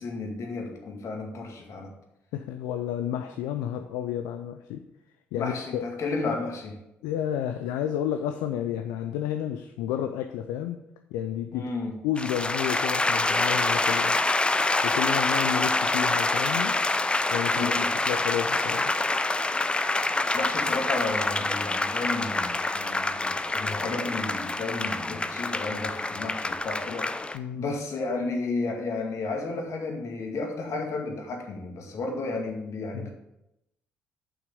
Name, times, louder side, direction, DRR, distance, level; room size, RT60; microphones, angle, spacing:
voice 1, 0.0-1.9 5.4-6.8 11.5-12.0 17.5-17.9 20.3-33.1, left 3 dB, 55° left, 2 dB, 2.0 m, -33 dB
voice 2, 2.3-4.8 5.3-5.9 7.0-10.8 11.1-11.7 12.0-14.2 14.8-16.8 17.3-17.7 18.1-18.9 27.3-27.7 32.9-33.1, left 10 dB, 75° left, 7 dB, 0.5 m, -31 dB
sound 1, 12.2-27.4, left 2 dB, 15° left, 0.6 m, -26 dB
7.2 x 5.8 x 7.0 m, 0.88 s
hypercardioid pair, 50°, 6 cm